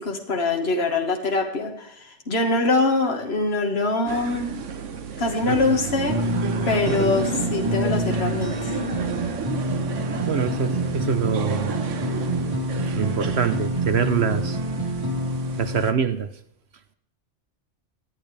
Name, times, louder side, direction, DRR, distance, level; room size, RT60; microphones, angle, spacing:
voice 1, 0.0-4.5 5.2-6.2 6.7-8.7, left 3 dB, 60° left, 2 dB, 2.0 m, -23 dB
sound 1, 4.0-15.9, right 6 dB, 85° right, 1.4 m, -33 dB
voice 2, 5.4-5.8 6.9-7.1 10.3-11.7 13.0-14.6 15.6-16.3, right 7 dB, 65° right, 10 dB, 1.1 m, -25 dB
sound 2, 5.9-15.9, equal, 25° right, 3.8 m, -27 dB
24.0 x 9.3 x 3.4 m, 0.78 s
omnidirectional pair, 1.2 m